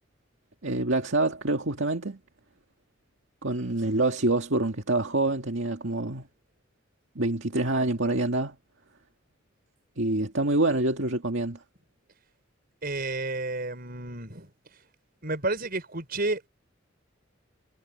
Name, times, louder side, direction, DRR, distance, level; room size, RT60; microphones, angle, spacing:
voice 1, 0.6-2.2 3.4-6.3 7.2-8.5 10.0-11.6, right 2 dB, 70° right, 2.0 m, -26 dB
voice 2, 12.8-14.5 15.2-16.5, right 2 dB, 50° right, 5.8 m, -31 dB
head